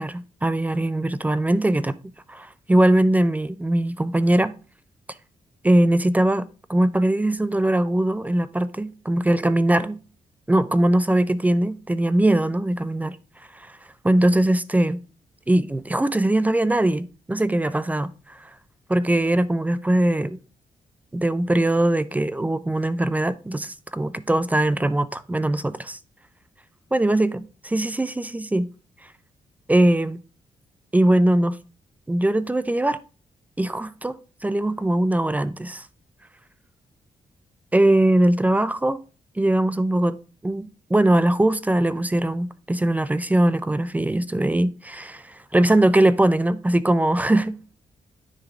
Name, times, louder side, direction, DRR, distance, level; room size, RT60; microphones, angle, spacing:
voice 1, 0.0-2.0 2.3-4.5 5.6-10.0 10.5-13.2 13.5-13.7 14.0-15.0 15.5-18.5 18.9-20.4 21.1-26.0 26.9-28.7 29.7-30.2 30.9-31.6 32.1-33.0 33.6-35.9 37.7-39.0 39.4-40.2 40.4-47.7, right 1 dB, 10° right, 0.4 m, -21 dB
9.9 x 3.7 x 3.5 m
cardioid pair, 95°, 13 cm